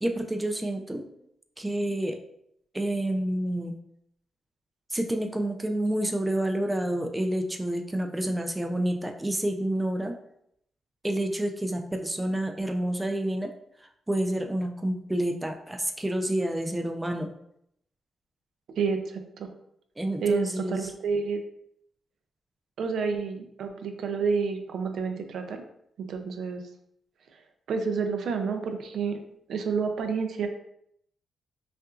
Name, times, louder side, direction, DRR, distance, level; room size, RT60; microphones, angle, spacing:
voice 1, 0.0-1.1 1.6-2.2 2.7-3.8 4.9-10.1 11.0-13.5 14.1-17.3 20.0-20.9, right 1 dB, 10° right, 4 dB, 0.3 m, -29 dB
voice 2, 18.7-19.5 20.2-21.4 22.8-25.6 26.0-26.6 27.7-29.2 29.5-30.5, right 5 dB, 75° right, 6 dB, 0.4 m, -29 dB
5.4 x 2.5 x 2.4 m, 0.74 s
wide cardioid pair, 155°, 0 cm